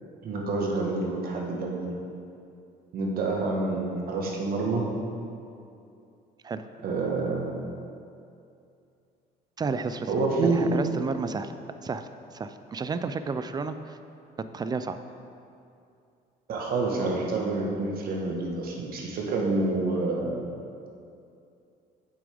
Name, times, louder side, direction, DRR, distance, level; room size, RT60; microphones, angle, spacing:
voice 1, 0.2-1.9 2.9-4.9 6.8-7.6 10.1-10.8 16.5-20.4, right 3 dB, 60° right, -1 dB, 1.4 m, -27 dB
voice 2, 9.6-11.5 11.8-14.0 14.4-15.0, right 4 dB, 25° right, 10 dB, 0.4 m, -32 dB
8.7 x 6.9 x 3.5 m, 2.6 s
cardioid pair, 110°, 17 cm